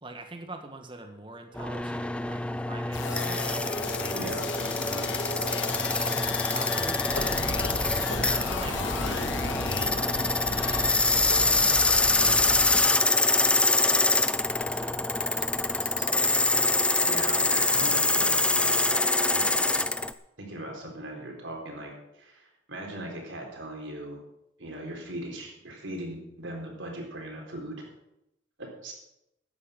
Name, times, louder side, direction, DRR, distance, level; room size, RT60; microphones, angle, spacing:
voice 1, 0.0-3.7 4.1-5.9 6.5-7.4 8.3-11.7 12.2-16.3, right 2 dB, 25° right, 5 dB, 1.5 m, -46 dB
sound 1, 1.6-20.1, left 2 dB, 5° left, 0.4 m, -25 dB
sound 2, 2.9-9.9, left 5 dB, 60° left, 1.0 m, -35 dB
voice 2, 4.1-4.5 17.0-19.8 20.4-24.2 24.6-27.8 28.6-28.9, right 1 dB, 65° right, 1 dB, 4.1 m, -39 dB
sound 3, 7.1-12.8, left 1 dB, 85° left, 2.0 m, -34 dB
13.5 x 9.9 x 5.9 m, 0.85 s
head